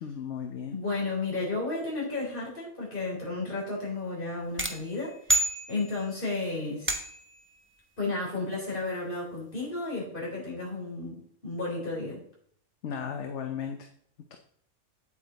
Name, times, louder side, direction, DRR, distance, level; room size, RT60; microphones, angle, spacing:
voice 1, 0.0-0.8 12.8-13.9, left 7 dB, 60° left, 5 dB, 1.0 m, -35 dB
voice 2, 0.7-5.1 5.7-6.9 8.0-12.2, left 3 dB, 35° left, -4 dB, 4.1 m, -33 dB
sound 1, 4.6-6.2 6.9-7.4, right 1 dB, 10° right, 0.6 m, -29 dB
8.4 x 8.3 x 4.0 m, 0.64 s
omnidirectional pair, 1.5 m